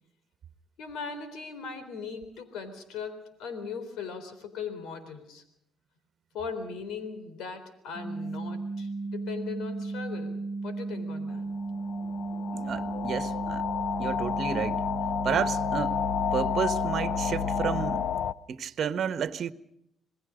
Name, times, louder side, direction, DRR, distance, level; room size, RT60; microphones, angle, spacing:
voice 1, 0.8-5.4 6.3-11.5, left 5 dB, 85° left, 3.9 m, -39 dB
sound 1, 7.9-17.9, right 3 dB, ahead, 3.8 m, -34 dB
sound 2, 11.6-18.3, left 9 dB, 70° left, 0.7 m, -31 dB
voice 2, 12.5-13.6 14.0-14.8 15.2-16.0 16.3-18.0 18.5-19.5, right 8 dB, 60° right, 1.4 m, -31 dB
27.5 x 20.5 x 5.2 m
cardioid pair, 90°, 0 cm